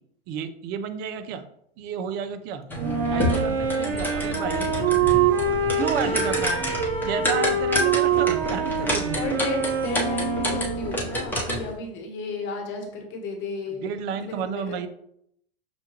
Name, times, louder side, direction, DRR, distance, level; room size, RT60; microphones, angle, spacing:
voice 1, 0.3-1.4 1.8-2.6 3.1-4.7 5.8-6.6 7.0-9.2 13.8-14.9, right 7 dB, 35° right, 9 dB, 0.4 m, -31 dB
sound 1, 2.7-11.8, left 1 dB, 5° left, 0.9 m, -29 dB
Wind instrument woodwind instrument, 2.8-11.1, right 5 dB, 80° right, 0.9 m, -25 dB
voice 2, 5.8-6.4 7.9-8.1 9.1-13.8 14.2-14.9, left 3 dB, 40° left, 3 dB, 1.1 m, -34 dB
6.0 x 2.2 x 3.0 m, 0.72 s
hypercardioid pair, 110°, 29 cm